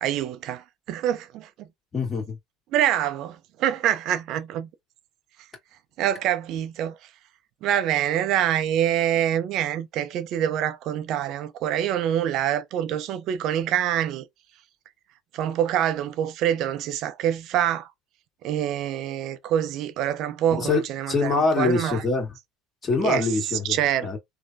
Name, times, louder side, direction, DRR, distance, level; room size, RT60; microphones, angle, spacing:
voice 1, 0.0-1.7 2.7-4.7 6.0-7.0 7.6-14.2 15.3-17.9 18.4-22.0 23.0-23.3 23.7-24.2, right 10 dB, 55° right, 0.5 m, -25 dB
voice 2, 1.9-2.4 20.5-22.3 22.8-24.2, left 4 dB, 30° left, 1.7 m, -25 dB
3.2 x 2.1 x 2.7 m
hypercardioid pair, 75°, 0 cm